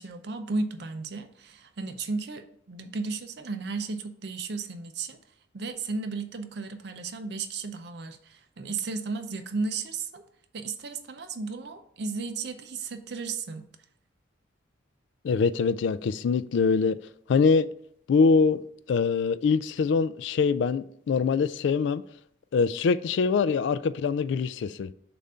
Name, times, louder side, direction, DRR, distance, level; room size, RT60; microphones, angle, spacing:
voice 1, 0.0-5.2 5.5-10.2 10.5-13.7, right 4 dB, 55° right, 0.5 m, -34 dB
voice 2, 15.2-17.0 17.3-17.7 18.1-18.6 18.9-22.0 22.5-24.9, left 5 dB, 70° left, 0.3 m, -23 dB
6.8 x 2.6 x 5.5 m
head